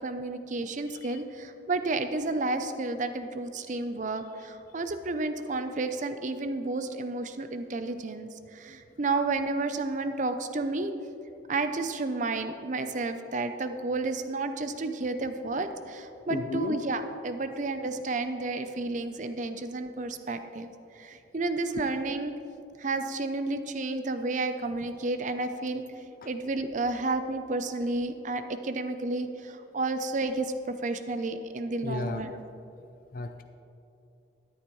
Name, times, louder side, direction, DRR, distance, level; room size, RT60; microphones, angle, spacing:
voice 1, 0.0-10.9 11.5-20.7 21.0-22.3 22.8-25.8 26.2-32.4, right 3 dB, 45° right, 9 dB, 0.6 m, -31 dB
voice 2, 16.3-16.7 26.2-26.3 31.8-32.3 33.1-33.4, left 3 dB, 50° left, 8 dB, 0.4 m, -32 dB
12.5 x 10.5 x 3.1 m, 2.8 s
head